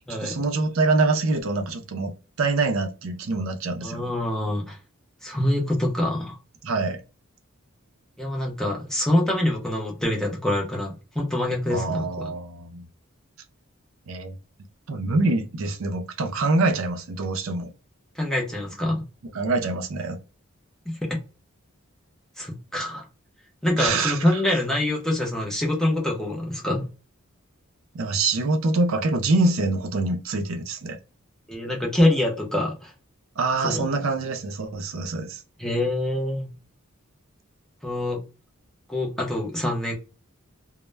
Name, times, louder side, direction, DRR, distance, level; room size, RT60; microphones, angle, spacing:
voice 1, 0.2-4.1 6.6-7.0 11.7-12.8 14.1-14.3 14.9-17.7 19.3-20.2 23.8-24.4 27.9-31.0 33.4-35.4, right 3 dB, 65° right, 0.4 m, -25 dB
voice 2, 3.8-4.8 5.2-6.4 8.2-12.1 18.2-19.0 20.9-21.2 22.4-23.0 23.6-26.9 31.5-32.9 33.6-33.8 35.6-36.5 37.8-38.2 38.9-39.9, left 1 dB, ahead, 0.6 m, -25 dB
2.1 x 2.0 x 3.1 m
head